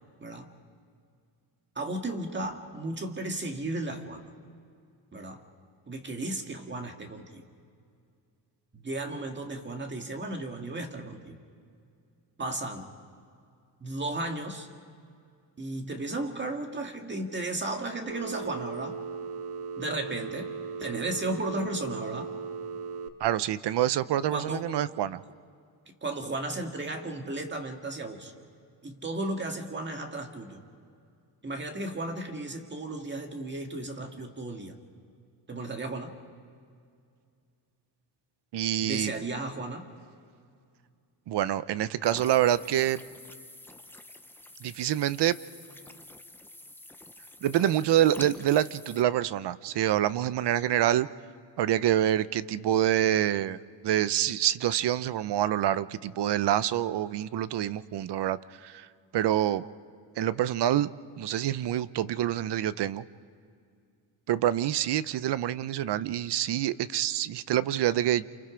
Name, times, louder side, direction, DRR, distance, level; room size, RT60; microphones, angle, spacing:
voice 1, 1.8-4.3 5.1-5.4 5.9-7.4 8.7-11.4 12.4-12.9 13.8-14.7 15.6-19.0 19.8-20.5 20.8-22.3 24.3-24.7 26.0-28.3 28.8-30.6 31.4-34.8 35.5-36.1 38.8-39.8, right 2 dB, 25° right, 4 dB, 1.9 m, -34 dB
Telephone, 18.1-23.1, right 5 dB, 80° right, 1.5 m, -37 dB
voice 2, 23.2-25.2 38.5-39.1 41.3-43.0 44.6-45.4 47.4-51.1 51.6-53.6 53.8-58.9 59.1-59.6 60.2-60.9 61.2-63.0 64.3-68.3, right 12 dB, 65° right, 16 dB, 0.7 m, -26 dB
sound 1, 42.0-49.0, left 1 dB, 5° left, 0.6 m, -47 dB
28.5 x 28.5 x 5.0 m, 2.3 s
wide cardioid pair, 160°, 44 cm